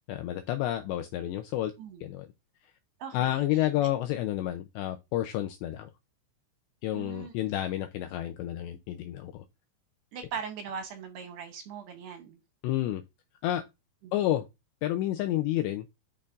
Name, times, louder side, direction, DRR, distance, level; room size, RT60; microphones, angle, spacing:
voice 1, 0.1-1.7 2.0-2.3 3.1-5.9 6.8-9.4 12.6-13.0 13.4-13.6 14.1-14.5 14.8-15.9, left 13 dB, 85° left, 2.5 m, -30 dB
voice 2, 3.0-3.9 6.9-7.3 10.1-12.4 14.0-14.3, right 6 dB, 75° right, 2.6 m, -40 dB
10.5 x 5.5 x 2.5 m
omnidirectional pair, 5.7 m